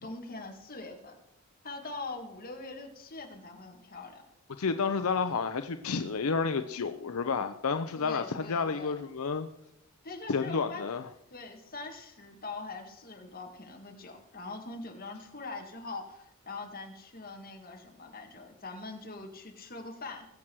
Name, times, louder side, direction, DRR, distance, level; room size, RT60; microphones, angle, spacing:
voice 1, 0.0-1.2 1.6-4.2 4.7-4.8 8.0-9.0 10.0-10.8 11.3-20.3, left 3 dB, 40° left, 2 dB, 2.1 m, -43 dB
voice 2, 4.6-9.5 10.3-11.1, left 5 dB, 75° left, 9 dB, 0.6 m, -30 dB
21.0 x 7.5 x 4.7 m, 0.80 s
head